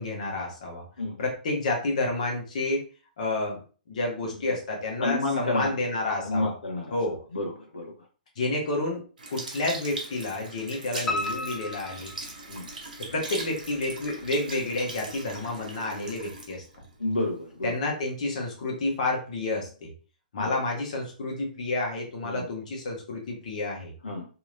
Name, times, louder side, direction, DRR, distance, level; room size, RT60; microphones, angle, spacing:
voice 1, 0.0-0.8 1.2-2.8 3.2-3.6 3.9-6.5 6.9-7.2 8.4-9.0 9.3-12.1 13.0-16.6 17.6-19.9 20.3-23.9, left 2 dB, 50° left, 0 dB, 1.1 m, -30 dB
voice 2, 5.0-5.7 6.2-7.0 7.3-7.9 12.5-12.7 17.0-17.8 20.4-20.5 22.2-22.5 24.0-24.3, left 2 dB, 70° left, 0 dB, 0.7 m, -30 dB
Sink (filling or washing) / Liquid, 9.2-17.8 18.4-18.5, right 2 dB, 65° right, 0.9 m, -40 dB
Piano, 11.1-13.0 13.4-14.3 14.6-14.7 15.2-15.3 15.5-15.6, left 2 dB, 15° left, 0.5 m, -34 dB
3.0 x 2.8 x 2.4 m, 0.37 s
figure-of-eight pair, 115°, 5 cm